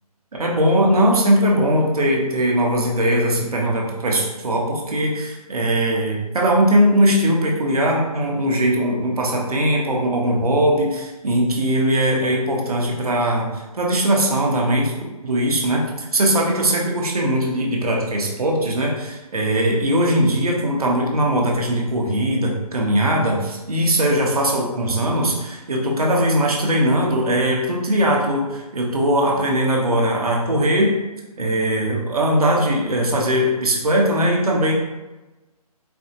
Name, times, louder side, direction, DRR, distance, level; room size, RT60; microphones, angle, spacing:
voice 1, 0.4-14.9 15.2-30.9 31.4-34.7, right 1 dB, 70° right, -1 dB, 1.0 m, -20 dB
4.2 x 2.3 x 2.8 m, 1.1 s
hypercardioid pair, 175°, 20 cm